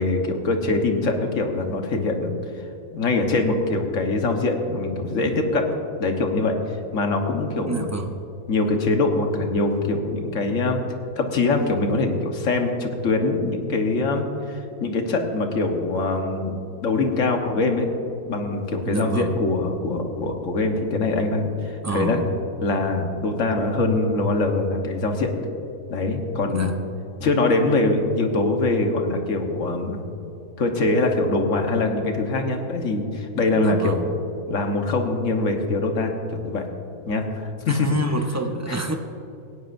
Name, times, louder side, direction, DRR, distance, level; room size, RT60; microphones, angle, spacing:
voice 1, 0.0-2.3 2.9-5.7 6.0-6.6 6.9-7.8 8.5-10.8 11.2-17.9 18.3-22.2 22.6-25.3 25.9-26.7 27.2-30.0 30.6-34.1 34.5-36.7 37.1-38.2 38.7-38.8, left 2 dB, 55° left, 3 dB, 1.6 m, -23 dB
voice 2, 7.7-8.1 18.8-19.4 21.8-22.3 26.5-26.7 33.6-34.1 37.7-39.0, right 2 dB, 25° right, 4 dB, 0.3 m, -28 dB
18.0 x 16.5 x 2.6 m, 2.8 s
omnidirectional pair, 1.6 m